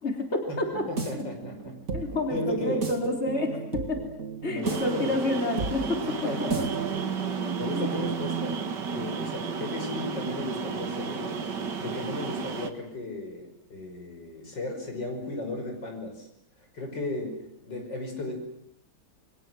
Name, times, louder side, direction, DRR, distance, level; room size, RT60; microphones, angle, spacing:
voice 1, 0.0-0.9 1.1-1.2 1.9-4.0 4.4-6.1 7.7-7.9, left 1 dB, 35° left, 2 dB, 4.4 m, -29 dB
sound 1, 0.6-7.2, right 5 dB, 50° right, 3.2 m, -35 dB
voice 2, 0.9-1.8 2.3-2.8 4.5-5.2 6.1-6.7 7.3-8.6 8.9-11.4 11.8-16.3 16.6-18.3, left 2 dB, 90° left, 3 dB, 6.5 m, -35 dB
sound 2, 4.6-12.7, right 5 dB, 75° right, 2.4 m, -32 dB
29.5 x 23.0 x 7.8 m, 0.72 s
omnidirectional pair, 1.9 m